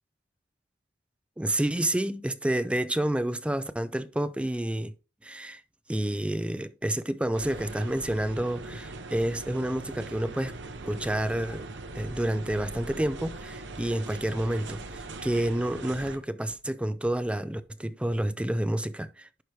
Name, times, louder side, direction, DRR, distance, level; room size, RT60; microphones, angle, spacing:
voice 1, 1.4-4.9 5.2-5.6 5.9-10.5 10.8-11.7 11.9-19.4, right 1 dB, 5° right, 0.4 m, -29 dB
sound 1, 7.3-16.2, right 2 dB, 70° right, 0.9 m, -41 dB
11.0 x 4.7 x 3.1 m
head